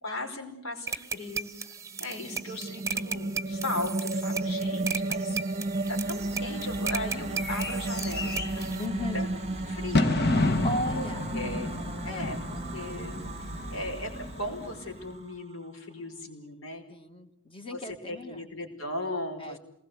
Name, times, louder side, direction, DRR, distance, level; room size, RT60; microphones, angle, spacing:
voice 1, 0.0-1.5 2.0-5.4 5.9-8.7 9.1-9.3 9.7-10.7 10.9-11.1 11.3-11.7 12.0-16.8 17.7-19.6, left 1 dB, 70° left, 5 dB, 4.9 m, -37 dB
sound 1, 0.9-8.9, right 6 dB, 15° right, 1.1 m, -36 dB
sound 2, 1.9-15.3, right 2 dB, 30° right, 0.9 m, -34 dB
Bird / Fireworks, 5.9-15.1, left 2 dB, 50° left, 1.5 m, -32 dB
voice 2, 8.8-9.2 10.6-11.3 12.1-12.3 16.9-18.5 19.4-19.6, left 1 dB, 25° left, 8 dB, 1.7 m, -36 dB
27.5 x 20.0 x 8.1 m, 0.80 s
head